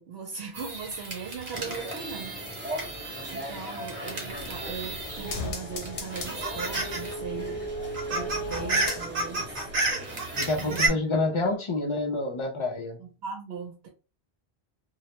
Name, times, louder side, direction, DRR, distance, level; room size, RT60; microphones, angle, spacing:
voice 1, 0.0-2.4 3.3-7.6 8.1-9.5 10.6-11.0 13.0-13.9, right 6 dB, 75° right, 0.9 m, -39 dB
sound 1, 0.5-5.5 5.8-7.1 7.4-7.5 7.8-10.9, right 2 dB, 55° right, 1.1 m, -32 dB
sound 2, 1.5-10.9, equal, 15° right, 0.6 m, -40 dB
sound 3, 4.3-9.5 9.8-9.9, equal, 65° left, 0.8 m, -37 dB
voice 2, 10.4-13.0, left 2 dB, 50° left, 0.3 m, -28 dB
2.3 x 2.1 x 2.8 m
omnidirectional pair, 1.1 m